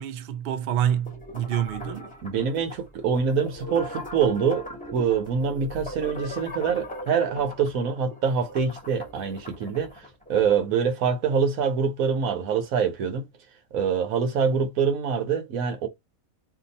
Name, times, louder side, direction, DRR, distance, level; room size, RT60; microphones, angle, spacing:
voice 1, 0.0-2.1, right 10 dB, 60° right, 0.6 m, -27 dB
sound 1, 1.1-10.6, equal, 5° left, 0.9 m, -39 dB
voice 2, 2.2-4.7 4.9-13.3 13.7-15.9, right 6 dB, 80° right, 1.2 m, -25 dB
2.8 x 2.5 x 3.9 m
omnidirectional pair, 1.5 m